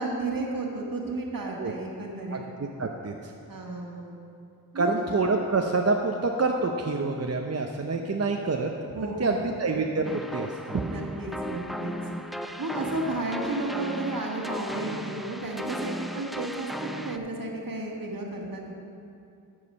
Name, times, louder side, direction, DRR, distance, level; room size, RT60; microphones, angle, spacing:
voice 1, 0.0-2.4 3.5-4.2 4.7-5.0 8.9-9.4 10.9-11.9 12.6-18.7, right 2 dB, 65° right, -1 dB, 1.6 m, -33 dB
voice 2, 2.3-3.1 4.7-8.7 9.0-10.5, right 3 dB, 40° right, 2 dB, 0.6 m, -27 dB
sound 1, 10.0-17.2, equal, ahead, 0.4 m, -36 dB
14.0 x 4.9 x 5.4 m, 2.6 s
cardioid pair, 50°, 37 cm